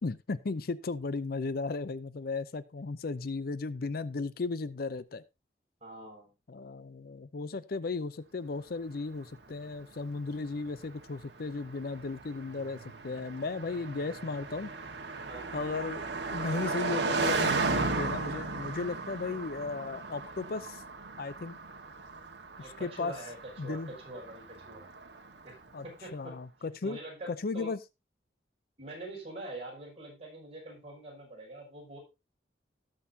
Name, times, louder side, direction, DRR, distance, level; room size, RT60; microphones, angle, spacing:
voice 1, 0.0-5.2 6.5-14.7 15.5-16.0 16.3-20.8 21.2-21.6 22.8-23.1 23.6-23.9 25.7-25.8 26.1-27.0 27.3-27.8, left 3 dB, 55° left, 16 dB, 0.5 m, -35 dB
voice 2, 5.8-6.3 15.3-15.5 22.6-24.9 25.4-25.6 25.8-26.4 26.8-27.7 28.8-32.0, right 1 dB, 35° right, -3 dB, 6.0 m, -44 dB
Car passing by, 9.2-25.6, right 3 dB, 75° right, 1.5 m, -36 dB
18.0 x 6.5 x 2.7 m, 0.25 s
head